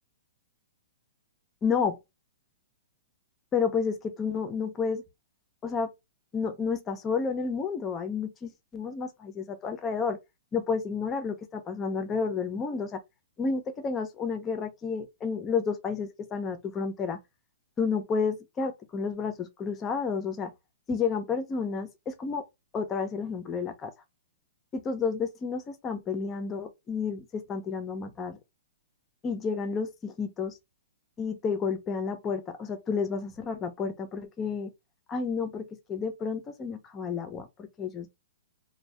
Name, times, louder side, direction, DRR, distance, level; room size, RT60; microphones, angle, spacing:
voice 1, 1.6-1.9 3.5-5.0 5.6-5.9 6.3-10.2 10.5-13.0 13.4-17.2 17.8-20.5 20.9-22.4 22.7-23.9 24.7-28.4 29.2-30.6 31.2-34.7 35.1-38.1, left 5 dB, 15° left, 0.4 m, -31 dB
2.6 x 2.0 x 3.2 m
hypercardioid pair, 170°, 0 cm